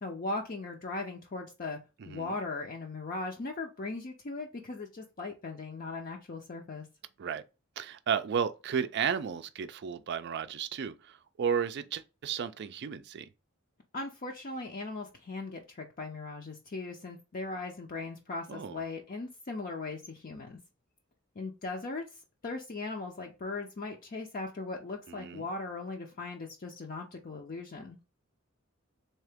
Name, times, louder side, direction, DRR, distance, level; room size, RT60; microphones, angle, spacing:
voice 1, 0.0-1.8 2.1-6.9 13.9-20.6 21.4-22.0 22.4-28.0, left 3 dB, 40° left, 0.6 m, -38 dB
voice 2, 2.0-2.4 7.2-7.4 7.8-13.3 18.5-18.8 25.1-25.5, right 7 dB, 55° right, 0.4 m, -33 dB
3.6 x 2.8 x 3.4 m
head